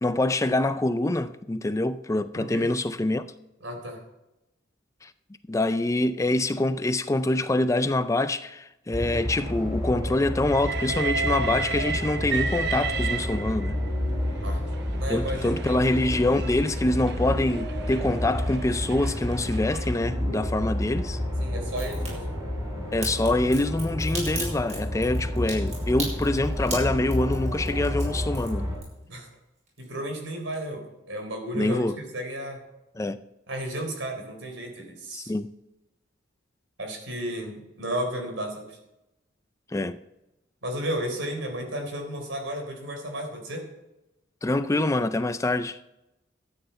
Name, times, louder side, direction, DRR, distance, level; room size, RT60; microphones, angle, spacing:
voice 1, 0.0-3.3 5.0-5.1 5.5-13.8 15.1-21.2 22.9-28.7 31.5-32.0 33.0-33.2 35.1-35.5 39.7-40.0 44.4-45.8, left 2 dB, 15° left, 0.4 m, -25 dB
voice 2, 2.4-2.7 3.6-4.0 14.4-14.6 15.0-15.9 21.4-22.3 29.1-29.3 29.8-32.6 33.5-35.3 36.8-38.8 40.6-43.7, right 1 dB, 75° right, 3.7 m, -33 dB
sound 1, 8.9-28.8, left 1 dB, 15° right, 5.1 m, -30 dB
Train, 10.5-13.9 14.7-20.0, right 5 dB, 55° right, 0.7 m, -33 dB
Crack, 21.7-22.1 23.0-29.3 29.6-30.2 30.5-30.6, right 2 dB, 40° right, 5.8 m, -36 dB
13.0 x 9.0 x 5.8 m
head